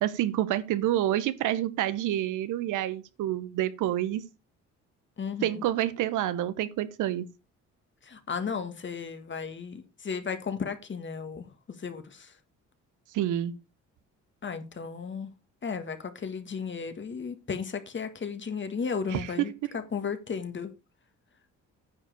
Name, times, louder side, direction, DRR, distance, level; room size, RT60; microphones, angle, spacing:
voice 1, 0.0-4.3 5.4-7.3 13.1-13.5 19.1-19.8, right 13 dB, 90° right, 1.0 m, -28 dB
voice 2, 5.2-5.6 8.0-12.3 14.4-15.3 15.6-19.5 19.9-20.7, left 6 dB, 40° left, 1.9 m, -34 dB
9.7 x 4.8 x 6.8 m
cardioid pair, 90°, 30 cm